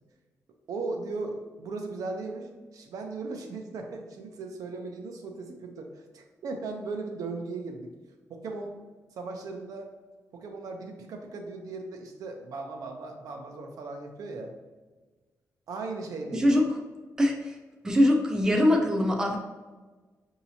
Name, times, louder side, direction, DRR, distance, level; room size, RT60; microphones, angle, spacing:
voice 1, 0.7-7.9 8.3-8.7 9.1-9.9 10.3-14.6 15.7-16.5, right 3 dB, 80° right, 3 dB, 0.6 m, -37 dB
voice 2, 16.3-16.7 17.2-17.5 17.8-19.4, left 1 dB, 10° right, 2 dB, 0.4 m, -22 dB
5.7 x 2.8 x 2.8 m, 1.3 s
wide cardioid pair, 175°, 6 cm